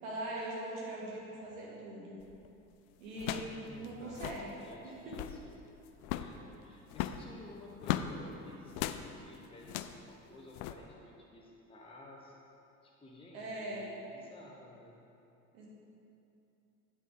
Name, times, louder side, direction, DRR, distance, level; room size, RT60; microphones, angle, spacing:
voice 1, 0.0-2.2 3.0-4.5 4.8-5.2 13.3-13.9 15.5-15.7, right 1 dB, 65° right, -4 dB, 2.0 m, -41 dB
sound 1, 2.2-2.5 3.2-3.6 3.8-3.9 4.1-4.5 5.0-5.4 6.0-6.4 6.9-8.1 8.7-9.0 9.6-10.0 10.5-10.7, left 12 dB, 40° left, 0.4 m, -37 dB
voice 2, 3.6-5.7 6.1-12.4 12.8-15.0, left 2 dB, 10° left, -3 dB, 1.0 m, -54 dB
8.9 x 8.4 x 3.6 m, 2.9 s
figure-of-eight pair, 65°, 45 cm